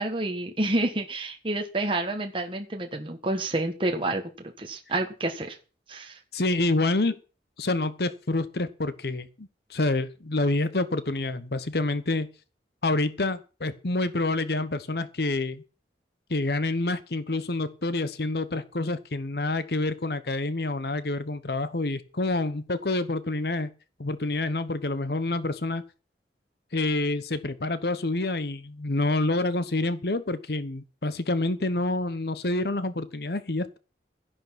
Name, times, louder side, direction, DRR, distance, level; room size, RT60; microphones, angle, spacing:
voice 1, 0.0-5.6 5.9-6.2, right 2 dB, 30° right, 4 dB, 1.6 m, -29 dB
voice 2, 6.3-7.2 7.6-12.3 12.8-15.6 16.3-23.7 24.0-25.8 26.7-33.8, left 2 dB, 65° left, 14 dB, 1.0 m, -27 dB
13.0 x 11.0 x 6.0 m, 0.35 s
head